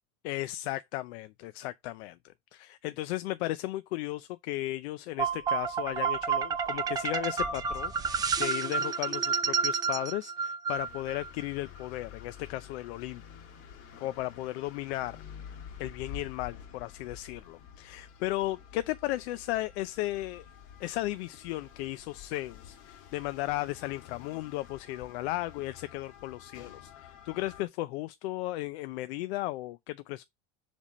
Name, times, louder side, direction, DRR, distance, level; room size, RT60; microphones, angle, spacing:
voice 1, 0.2-13.2 14.0-15.2 15.8-20.5 20.8-30.2, left 16 dB, 85° left, 0.6 m, -35 dB
sound 1, 5.2-11.3, right 6 dB, 10° right, 0.5 m, -30 dB
sound 2, 10.7-27.6, left 8 dB, 45° left, 1.6 m, -49 dB
7.4 x 3.6 x 4.1 m
cardioid pair, 170°, 31 cm